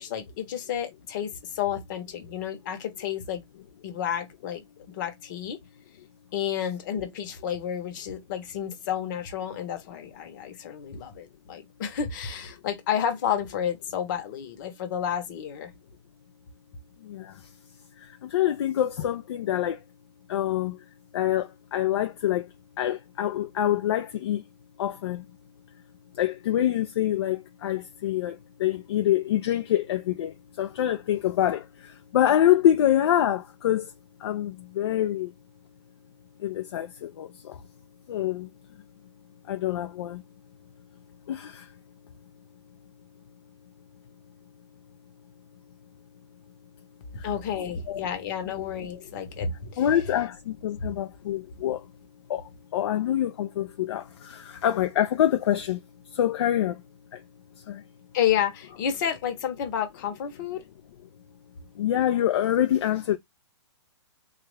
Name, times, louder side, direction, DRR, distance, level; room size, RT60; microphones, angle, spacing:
voice 1, 0.0-3.4 3.8-5.6 6.3-15.7 47.2-49.8 50.8-50.9 58.1-60.6, left 9 dB, 45° left, 1.0 m, -31 dB
voice 2, 17.0-17.4 18.0-19.8 20.3-20.8 21.1-22.5 22.8-24.4 24.8-25.3 26.1-33.9 34.2-35.3 36.4-37.6 38.1-38.5 39.5-40.2 41.3-41.7 47.2-47.3 47.9-48.0 48.6-48.7 49.8-51.9 52.3-55.8 56.1-56.8 57.1-57.2 57.7-57.8 61.8-63.2, left 11 dB, 60° left, 0.5 m, -26 dB
3.3 x 2.4 x 3.2 m
hypercardioid pair, 150°, 15 cm